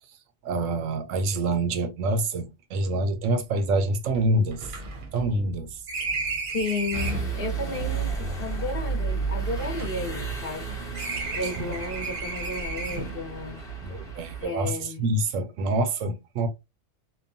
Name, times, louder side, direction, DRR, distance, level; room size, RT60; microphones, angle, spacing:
voice 1, 0.4-4.7 5.1-5.8 11.6-11.7 13.8-16.5, right 2 dB, 90° right, 1.0 m, -26 dB
sound 1, 3.2-3.3 3.6-3.7 4.1-7.4 8.2-10.6 10.9-13.3, right 3 dB, 50° right, 0.7 m, -34 dB
voice 2, 6.5-10.8 11.3-13.6 14.4-15.2, left 3 dB, 55° left, 0.9 m, -33 dB
sound 2, 6.9-14.5, right 5 dB, 5° left, 0.7 m, -32 dB
2.9 x 2.2 x 2.4 m
omnidirectional pair, 1.3 m